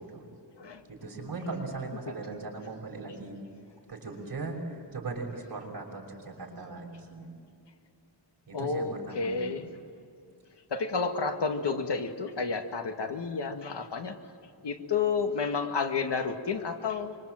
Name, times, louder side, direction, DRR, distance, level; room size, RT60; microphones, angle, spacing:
voice 1, 0.9-3.4 3.9-4.6 4.9-7.3 8.5-9.4, right 3 dB, 55° right, -1 dB, 6.0 m, -38 dB
voice 2, 8.5-9.7 10.7-14.1 14.6-17.2, left 5 dB, 75° left, 6 dB, 1.9 m, -31 dB
25.5 x 23.5 x 7.7 m, 2.6 s
wide cardioid pair, 125°, 42 cm